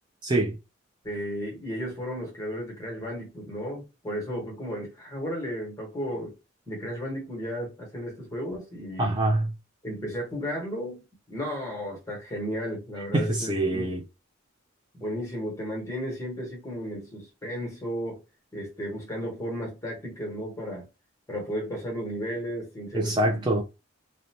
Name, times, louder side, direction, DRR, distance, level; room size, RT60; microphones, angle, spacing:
voice 1, 0.2-0.6 9.0-9.5 13.1-14.0 22.9-23.6, right 1 dB, 20° right, 0.3 m, -25 dB
voice 2, 1.0-6.3 6.7-9.2 9.8-13.9 14.9-18.2 18.5-20.9 21.3-23.4, equal, 15° left, 1.1 m, -34 dB
2.6 x 2.1 x 2.7 m
head